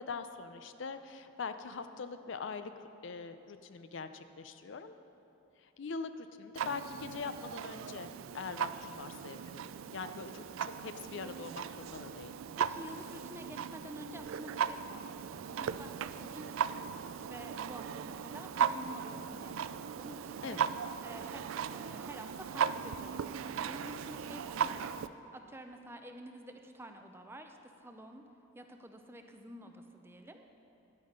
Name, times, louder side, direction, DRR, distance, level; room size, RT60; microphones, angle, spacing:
voice 1, 0.0-2.7 3.0-4.9 5.6-12.3 16.2-16.4 20.4-20.7, left 5 dB, 60° left, 10 dB, 0.5 m, -43 dB
Clock, 6.5-25.1, right 7 dB, 75° right, 0.3 m, -38 dB
voice 2, 12.6-16.7 17.1-20.6 21.0-28.2 28.5-30.5, right 1 dB, 10° right, 5 dB, 0.5 m, -50 dB
10.5 x 8.9 x 5.3 m, 3.0 s
head